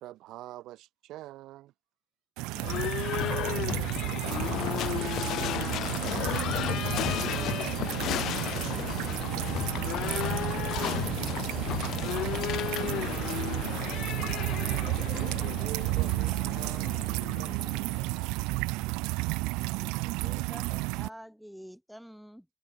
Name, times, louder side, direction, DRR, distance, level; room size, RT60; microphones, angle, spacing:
voice 1, 0.0-1.7 6.2-9.3 15.1-18.3 20.2-20.8, right 16 dB, 60° right, 1.7 m, -47 dB
sound 1, 2.4-21.1, right 25 dB, 80° right, 0.5 m, -32 dB
Livestock farm animals working animals / Bell, 2.6-18.4, left 13 dB, 50° left, 1.3 m, -33 dB
voice 2, 2.6-5.4 10.0-12.9, right 10 dB, 40° right, 5.8 m, -58 dB
voice 3, 19.7-22.5, equal, ahead, 5.6 m, -48 dB
cardioid pair, 145°, 0 cm